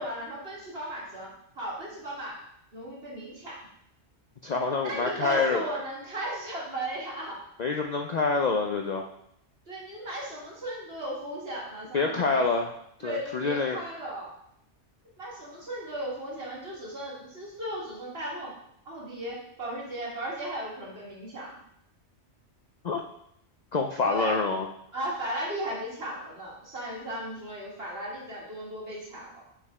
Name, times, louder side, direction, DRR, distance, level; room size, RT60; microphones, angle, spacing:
voice 1, 0.0-2.4 2.7-3.6 4.8-7.4 9.7-12.4 13.0-14.4 15.2-18.6 18.9-21.6 24.0-24.4 24.9-29.4, right 1 dB, 55° right, -5 dB, 2.3 m, -36 dB
voice 2, 4.4-5.6 7.6-9.0 11.9-12.7 13.0-13.8 22.8-23.0 23.7-24.7, left 4 dB, 55° left, 2 dB, 0.5 m, -26 dB
5.3 x 5.0 x 4.8 m, 0.72 s
omnidirectional pair, 1.2 m